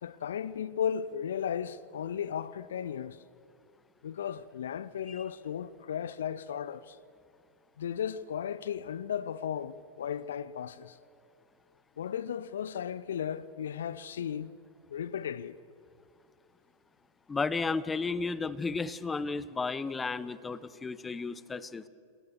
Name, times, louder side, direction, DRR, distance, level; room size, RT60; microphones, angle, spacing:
voice 1, 0.0-3.2 4.0-7.0 7.8-11.0 12.0-14.6 14.9-15.6, left 8 dB, 65° left, 0.6 m, -35 dB
voice 2, 17.3-21.8, left 4 dB, 15° left, 0.9 m, -33 dB
28.5 x 19.5 x 6.9 m
figure-of-eight pair, 90°, 0 cm